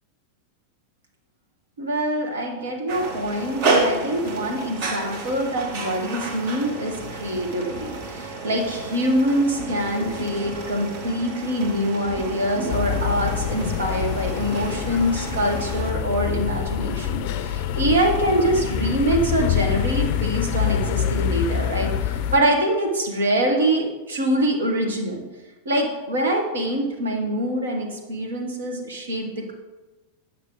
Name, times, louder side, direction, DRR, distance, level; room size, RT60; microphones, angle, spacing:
voice 1, 1.8-25.2 25.6-29.5, right 1 dB, 70° right, 1 dB, 1.5 m, -24 dB
sound 1, 2.9-15.9, right 3 dB, 45° right, 1.3 m, -31 dB
sound 2, 12.7-22.4, left 9 dB, 45° left, 0.4 m, -26 dB
8.6 x 5.6 x 3.9 m, 1.2 s
figure-of-eight pair, 90°, 0 cm